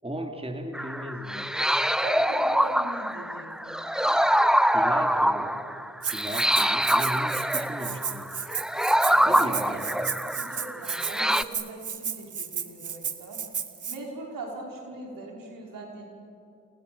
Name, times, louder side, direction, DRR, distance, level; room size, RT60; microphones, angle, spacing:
voice 1, 0.0-1.5 4.7-5.6 6.1-8.3 9.3-10.2, right 1 dB, 15° right, 3 dB, 3.4 m, -36 dB
sound 1, 0.7-11.4, equal, ahead, 1.0 m, -25 dB
voice 2, 2.0-4.0 9.1-10.0 10.4-13.4 13.9-16.0, right 2 dB, 80° right, -1 dB, 5.7 m, -40 dB
Rattle (instrument), 6.0-14.0, right 7 dB, 65° right, 1.7 m, -33 dB
29.0 x 28.5 x 7.2 m, 2.5 s
supercardioid pair, 45°, 33 cm